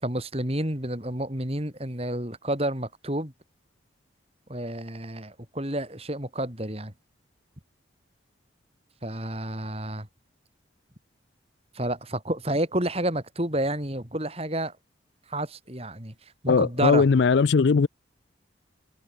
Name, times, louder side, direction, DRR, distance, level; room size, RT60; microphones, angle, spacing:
voice 1, 0.0-3.3 4.5-6.9 9.0-10.1 11.7-14.7 15.3-16.1 16.4-17.1, right 1 dB, 30° right, 4.3 m, -30 dB
voice 2, 16.5-17.9, left 5 dB, 65° left, 0.4 m, -19 dB
head